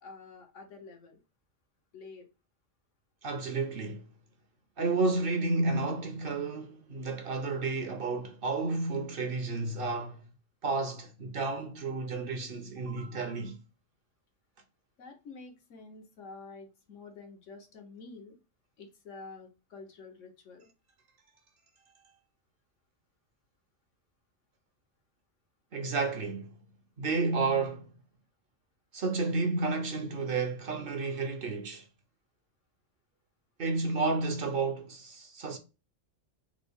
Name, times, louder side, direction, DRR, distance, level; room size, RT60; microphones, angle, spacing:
voice 1, 0.0-1.2 1.9-2.3 15.0-18.4 18.8-20.7, left 4 dB, 85° left, 1.3 m, -48 dB
voice 2, 3.2-4.0 4.8-10.2 10.6-13.6 25.7-26.5 27.0-27.9 28.9-31.8 33.6-35.6, right 3 dB, 60° right, 0.7 m, -31 dB
3.6 x 2.0 x 3.4 m
omnidirectional pair, 1.2 m